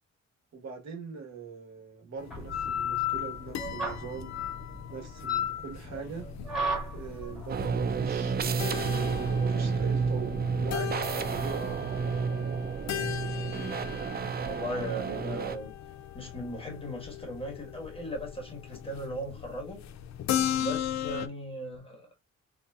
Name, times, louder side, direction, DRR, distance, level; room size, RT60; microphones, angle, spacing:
voice 1, 0.5-4.4 4.9-6.3 6.9-11.8, right 5 dB, 65° right, 1.3 m, -42 dB
sound 1, 2.2-21.3, left 10 dB, 70° left, 0.5 m, -38 dB
sound 2, 2.3-11.5, left 4 dB, ahead, 1.5 m, -34 dB
sound 3, 7.5-15.6, right 5 dB, 35° right, 0.4 m, -30 dB
voice 2, 14.4-15.7 16.1-19.8 20.6-22.0, equal, 20° left, 1.5 m, -38 dB
3.8 x 2.7 x 2.4 m
cardioid pair, 105°, 29 cm